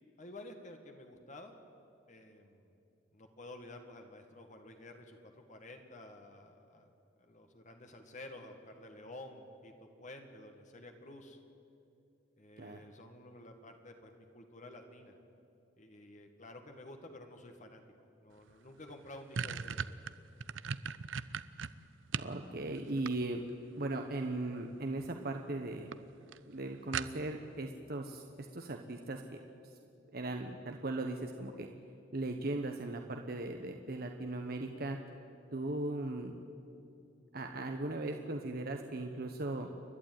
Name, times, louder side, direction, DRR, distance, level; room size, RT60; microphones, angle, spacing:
voice 1, 0.2-1.6 2.1-2.8 3.1-6.9 7.2-11.4 12.4-15.2 15.8-17.8 18.2-19.9, left 1 dB, 40° left, 5 dB, 1.7 m, -51 dB
sound 1, 18.5-18.6 18.9-22.4 22.8-23.6 24.7-25.1 25.5-25.6 25.9-26.0 26.3-26.4 26.9-27.5, right 6 dB, 80° right, 0.6 m, -38 dB
voice 2, 22.1-23.4 23.7-25.9 26.5-29.4 29.6-29.7 30.1-31.7 32.1-35.0 35.5-36.3 37.3-39.7, right 2 dB, 55° right, 4 dB, 1.1 m, -38 dB
29.5 x 11.5 x 9.3 m, 2.6 s
head